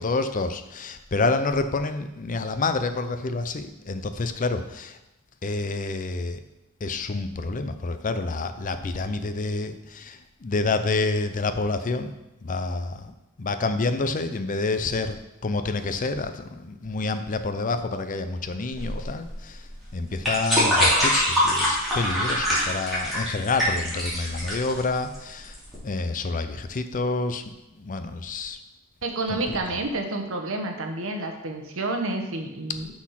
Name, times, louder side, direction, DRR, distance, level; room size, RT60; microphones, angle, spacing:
voice 1, 0.0-5.0 5.4-6.4 6.8-12.1 12.4-19.6 19.9-25.6 25.8-27.4 27.8-28.6 29.3-29.4, left 3 dB, 40° left, 9 dB, 0.5 m, -28 dB
sound 1, 18.7-25.8, equal, ahead, 3.4 m, -24 dB
voice 2, 29.0-32.9, right 2 dB, 65° right, 4 dB, 1.2 m, -29 dB
6.3 x 6.1 x 5.8 m, 0.97 s
head